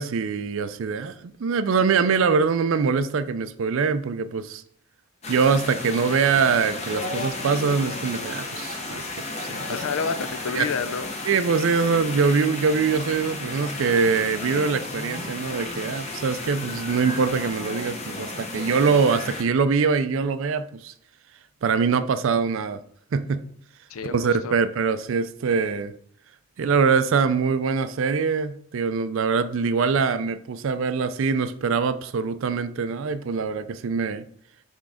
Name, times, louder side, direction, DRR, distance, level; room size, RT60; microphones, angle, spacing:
voice 1, 0.0-4.6 5.3-9.8 10.5-10.7 11.3-20.9 21.6-22.8 23.1-23.4 24.1-25.9 26.6-34.2, right 5 dB, 65° right, 0.4 m, -23 dB
sound 1, 5.2-19.4, left 2 dB, 30° left, 0.9 m, -33 dB
voice 2, 9.7-11.1 23.9-24.6, left 5 dB, 80° left, 0.5 m, -29 dB
6.0 x 3.6 x 4.9 m
head